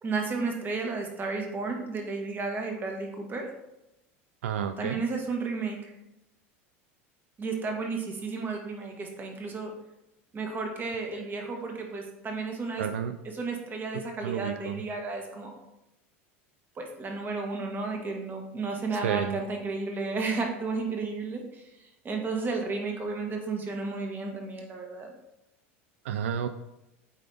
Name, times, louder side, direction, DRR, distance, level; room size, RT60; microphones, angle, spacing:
voice 1, 0.0-3.5 4.8-5.9 7.4-9.7 10.3-12.8 13.3-15.5 16.8-21.6 22.0-25.1, right 4 dB, 30° right, 2 dB, 1.6 m, -33 dB
voice 2, 4.4-5.0 12.8-13.2 13.9-14.8 18.9-19.4 26.0-26.5, right 8 dB, 85° right, 9 dB, 0.4 m, -31 dB
8.1 x 4.1 x 3.4 m, 0.90 s
hypercardioid pair, 100°, 7 cm